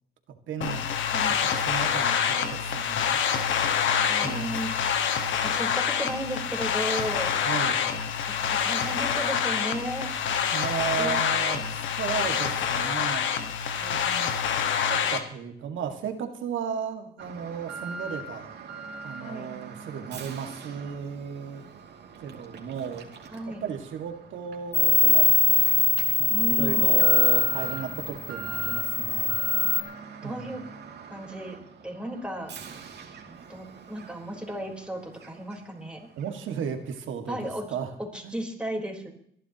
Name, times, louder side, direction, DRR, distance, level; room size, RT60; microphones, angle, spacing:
voice 1, 0.5-1.0 1.4-3.2 3.5-3.7 4.2-4.6 7.5-7.9 10.4-13.3 13.8-14.3 14.9-18.5 19.0-21.6 22.2-23.1 23.5-25.6 26.2-29.4 30.2-30.5 36.2-37.9 38.2-38.4, right 7 dB, 75° right, 5 dB, 2.0 m, -35 dB
sound 1, 0.6-15.2, left 7 dB, 75° left, 1.5 m, -26 dB
voice 2, 1.1-1.4 4.0-4.7 5.4-7.4 8.3-10.1 11.0-11.2 19.2-19.5 23.3-23.7 26.3-27.2 29.6-29.7 30.2-30.6 31.1-31.6 31.8-32.5 33.3-36.1 37.3-37.7 38.0-39.1, equal, 5° right, 0 dB, 4.0 m, -34 dB
Alarm, 17.2-35.9 36.2-36.3 36.9-37.0, right 4 dB, 60° right, 2.6 m, -42 dB
sound 2, 24.7-29.8, left 5 dB, 25° left, 1.3 m, -22 dB
27.0 x 11.0 x 3.0 m, 0.67 s
cardioid pair, 90°, 20 cm